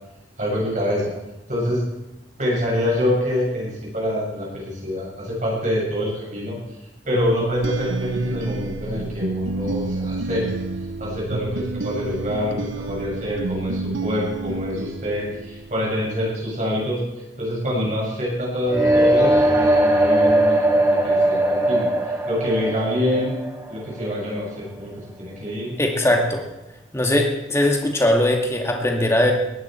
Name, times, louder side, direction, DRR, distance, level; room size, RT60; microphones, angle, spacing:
voice 1, 0.4-1.1 1.5-1.8 2.4-6.6 7.1-10.4 11.0-17.0 17.4-21.9 22.3-23.3 23.7-24.9 25.2-25.7, left 1 dB, 40° right, -4 dB, 7.0 m, -25 dB
sound 1, 7.1-15.9, right 3 dB, 80° right, 0.9 m, -29 dB
sound 2, 18.6-24.6, right 1 dB, 20° right, 3.8 m, -19 dB
voice 2, 25.8-26.4 26.9-29.3, left 1 dB, 15° left, 2 dB, 2.2 m, -20 dB
19.5 x 14.5 x 4.5 m, 1.0 s
head